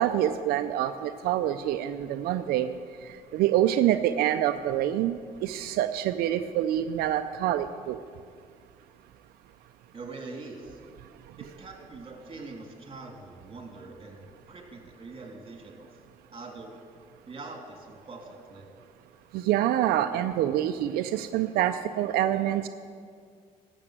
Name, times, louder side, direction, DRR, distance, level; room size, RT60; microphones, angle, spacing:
voice 1, 0.0-2.8 3.3-5.2 5.4-8.0 19.3-22.7, right 12 dB, 85° right, 9 dB, 0.5 m, -26 dB
voice 2, 9.9-10.8 11.4-15.9 16.3-16.7 17.3-18.6, right 3 dB, 35° right, 2 dB, 2.8 m, -43 dB
12.5 x 6.9 x 8.8 m, 2.1 s
cardioid pair, 80°, 15 cm